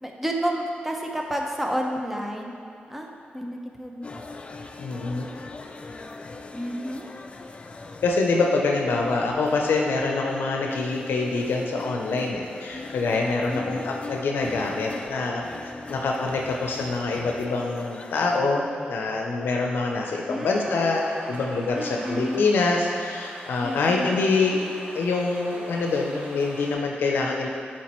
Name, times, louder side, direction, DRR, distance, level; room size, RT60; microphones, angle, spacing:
voice 1, 0.0-2.5 2.9-3.1 3.3-4.1 6.5-7.1 13.5-13.8 20.3-21.2 21.7-22.5 23.6-24.1, equal, 5° right, 1 dB, 0.6 m, -30 dB
sound 1, 4.0-18.4, left 3 dB, 30° left, 0.3 m, -40 dB
voice 2, 4.8-5.3 8.0-27.5, left 3 dB, 90° left, 0 dB, 0.5 m, -25 dB
sound 2, 17.9-26.7, right 1 dB, 70° right, 1.1 m, -44 dB
7.3 x 4.4 x 3.0 m, 2.5 s
wide cardioid pair, 95°, 4 cm